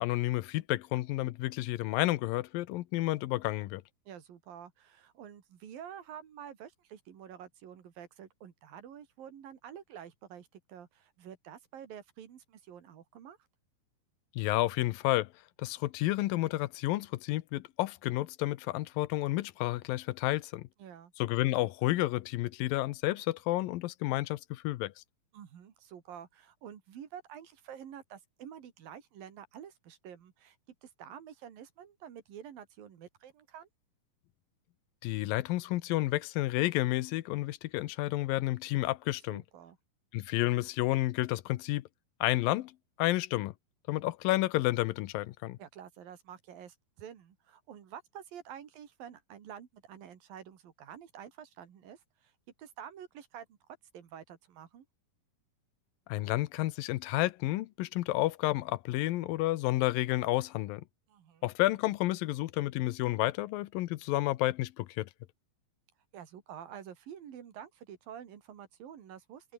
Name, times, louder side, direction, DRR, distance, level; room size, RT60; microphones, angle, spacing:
voice 1, 0.0-3.8 14.4-15.3 15.6-20.7 21.2-24.9 35.0-39.4 40.1-41.8 42.2-42.7 43.0-43.5 43.9-45.6 56.1-60.8 61.4-65.1, left 17 dB, 90° left, 2.6 m, -30 dB
voice 2, 4.1-13.4 20.8-21.1 25.3-33.7 39.3-39.8 45.6-52.3 52.6-53.6 53.9-54.9 61.1-61.5 66.1-69.5, right 9 dB, 80° right, 4.2 m, -49 dB
omnidirectional pair, 4.0 m